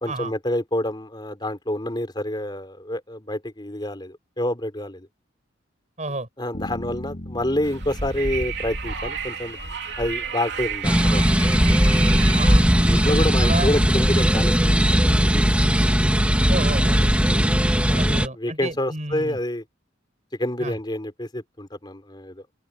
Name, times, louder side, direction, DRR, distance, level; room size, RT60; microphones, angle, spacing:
voice 1, 0.0-5.1 6.1-9.6 10.0-11.2 12.8-15.5 17.3-17.6 17.9-19.6 20.4-22.4, left 1 dB, 25° left, 3.8 m, -28 dB
voice 2, 6.0-6.3 12.3-12.7 13.4-13.8 16.5-17.2 17.9-19.4 20.6-20.7, right 2 dB, 40° right, 5.7 m, -31 dB
sound 1, 6.5-10.6, left 1 dB, 45° left, 4.5 m, -39 dB
Wind, 7.6-14.3, right 3 dB, 60° right, 3.5 m, -30 dB
sound 2, 10.8-18.3, equal, 5° right, 2.4 m, -18 dB
head